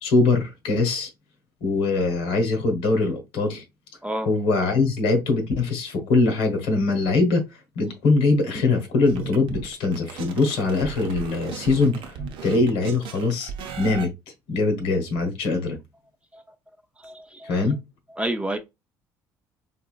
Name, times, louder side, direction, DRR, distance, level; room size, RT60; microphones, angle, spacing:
voice 1, 0.0-1.1 1.6-3.6 4.2-7.4 7.7-12.2 12.4-13.5 13.8-14.1 14.5-15.8 17.4-17.8, left 3 dB, 75° left, 1.2 m, -22 dB
sound 1, 9.1-14.1, right 6 dB, 65° right, 0.7 m, -36 dB
voice 2, 17.0-17.5 18.2-18.6, right 1 dB, 10° right, 0.6 m, -29 dB
3.5 x 2.8 x 2.4 m
hypercardioid pair, 65°, 9 cm